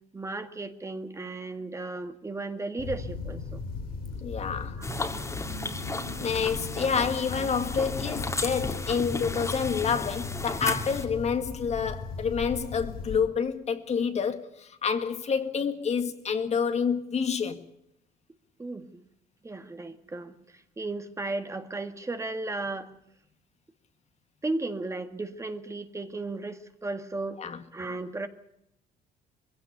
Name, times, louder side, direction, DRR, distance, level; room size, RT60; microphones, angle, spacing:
voice 1, 0.1-3.6 4.8-4.9 18.6-19.0 19.4-22.9 24.4-27.4 27.7-28.3, right 2 dB, 15° right, 1.7 m, -35 dB
sound 1, 2.8-13.2, left 4 dB, 70° left, 5.3 m, -37 dB
voice 2, 4.2-4.8 6.2-17.6 27.4-27.6, left 6 dB, 40° left, 1.8 m, -28 dB
sound 2, 4.8-11.0, left 2 dB, 15° left, 2.4 m, -34 dB
21.5 x 16.5 x 8.2 m
cardioid pair, 110°, 17 cm